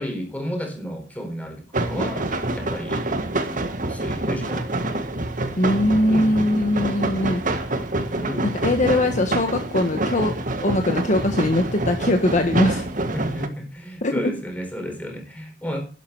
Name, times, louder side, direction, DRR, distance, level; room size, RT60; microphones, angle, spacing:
voice 1, 0.0-3.2 3.9-5.0 6.1-6.4 8.2-8.6 13.1-15.8, equal, 10° left, 4 dB, 4.3 m, -32 dB
sound 1, 1.7-13.5, right 2 dB, 45° right, 1.7 m, -26 dB
voice 2, 5.6-7.4 8.4-10.3 10.6-12.8 14.0-14.3, left 1 dB, 40° left, 5 dB, 1.3 m, -21 dB
12.0 x 10.5 x 4.7 m, 0.36 s
head